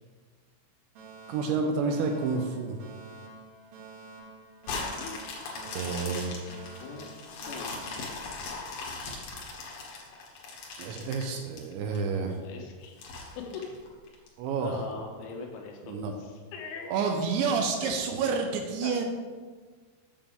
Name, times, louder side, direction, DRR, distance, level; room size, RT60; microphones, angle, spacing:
Alarm, 1.0-9.0, right 3 dB, 60° right, 3.1 m, -49 dB
voice 1, 1.3-2.8 5.8-6.4 10.8-12.4 14.4-14.8 15.9-16.1 16.9-19.1, right 5 dB, 80° right, 4 dB, 2.9 m, -29 dB
sound 1, 4.6-12.0 12.4-12.5 13.0-14.3 14.8-14.9, left 3 dB, 65° left, 2.3 m, -39 dB
voice 2, 4.9-5.3 6.7-7.2 7.5-7.7 12.4-13.0 13.4-13.7 14.6-17.0 17.8-18.0 18.8-19.1, left 5 dB, 80° left, 1 dB, 3.6 m, -41 dB
8.9 x 7.3 x 3.5 m, 1.4 s
omnidirectional pair, 5.6 m